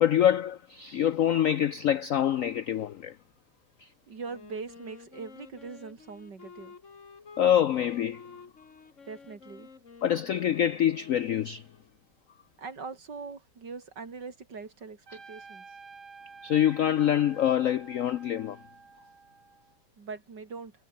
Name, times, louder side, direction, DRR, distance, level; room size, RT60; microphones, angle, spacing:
voice 1, 0.0-3.2 3.8-3.9 7.4-8.2 10.0-11.7 16.4-18.6, left 10 dB, 85° left, 0.7 m, -25 dB
voice 2, 4.1-6.8 9.1-9.7 12.6-15.7 20.0-20.7, right 4 dB, 60° right, 3.5 m, -41 dB
Wind instrument woodwind instrument, 4.2-11.9, left 5 dB, 40° left, 2.2 m, -51 dB
Trumpet, 15.1-19.8, right 4 dB, 85° right, 4.3 m, -50 dB
omnidirectional pair, 2.2 m